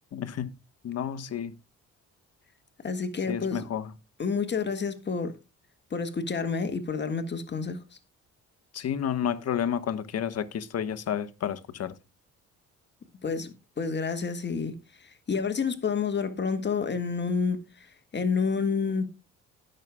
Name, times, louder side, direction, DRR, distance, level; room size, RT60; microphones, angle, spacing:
voice 1, 0.1-0.5 0.8-1.5 3.3-3.8 8.7-11.9, left 9 dB, 55° left, 1.3 m, -30 dB
voice 2, 2.8-3.6 4.2-5.3 5.9-7.8 13.2-19.0, left 5 dB, 35° left, 1.7 m, -29 dB
18.5 x 6.7 x 2.2 m
cardioid pair, 90°, 30 cm